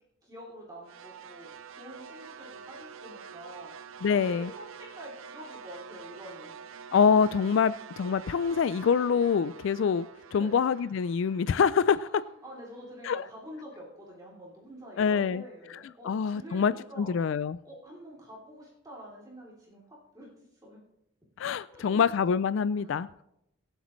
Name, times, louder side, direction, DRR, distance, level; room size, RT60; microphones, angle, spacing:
voice 1, 0.2-6.5 10.3-10.7 11.8-17.1 17.6-20.8 21.7-22.1 22.7-23.0, equal, 20° right, -5 dB, 3.0 m, -47 dB
sound 1, 0.9-13.1, right 6 dB, 75° right, 0.6 m, -47 dB
voice 2, 4.0-4.5 6.9-12.2 13.0-13.2 15.0-15.4 16.0-17.6 21.4-23.1, left 6 dB, 65° left, 16 dB, 0.3 m, -25 dB
24.0 x 8.1 x 3.1 m, 0.83 s
head